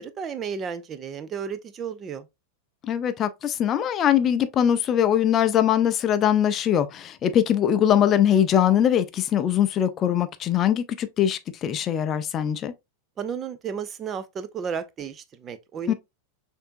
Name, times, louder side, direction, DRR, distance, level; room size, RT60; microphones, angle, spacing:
voice 1, 0.0-2.3 13.2-15.9, right 7 dB, 25° right, 0.5 m, -33 dB
voice 2, 2.8-12.7 15.9-16.0, left 10 dB, 30° left, 0.4 m, -22 dB
6.4 x 2.7 x 2.5 m
figure-of-eight pair, 90°, 0 cm